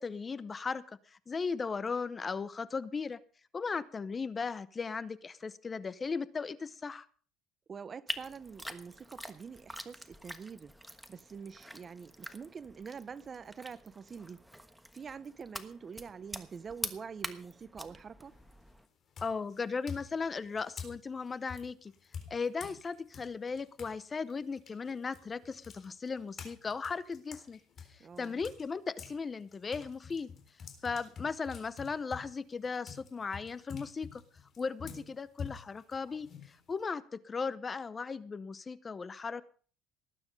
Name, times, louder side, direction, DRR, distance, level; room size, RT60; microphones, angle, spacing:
voice 1, 0.0-3.2 3.5-7.1 19.2-21.9 22.3-27.6 27.9-30.3 30.8-34.2 34.6-39.4, left 5 dB, 25° left, 0.7 m, -37 dB
voice 2, 7.7-10.7 11.1-14.4 14.9-18.3 28.0-28.4 34.8-35.1, right 6 dB, 30° right, 0.8 m, -46 dB
sound 1, 8.1-18.9, equal, ahead, 1.3 m, -45 dB
sound 2, 18.2-18.6 19.1-24.0 24.3-29.2 29.5-36.9, left 6 dB, 40° left, 3.8 m, -47 dB
19.0 x 9.7 x 5.3 m
cardioid pair, 130°, 0 cm